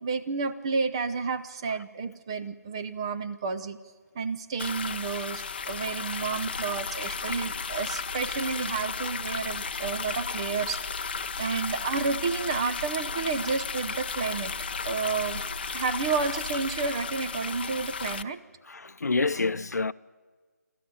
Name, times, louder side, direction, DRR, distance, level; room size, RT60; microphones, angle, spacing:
voice 1, 0.0-3.8 4.2-10.8 11.4-14.5 14.8-15.4 15.7-18.4, right 4 dB, 20° right, 0.6 m, -31 dB
sound 1, 4.6-18.2, left 5 dB, 35° left, 0.6 m, -34 dB
sound 2, 6.3-17.3, right 2 dB, 55° right, 5.4 m, -44 dB
voice 2, 18.7-19.9, left 3 dB, 70° left, 0.7 m, -27 dB
27.0 x 13.0 x 9.9 m
figure-of-eight pair, 165°, 9 cm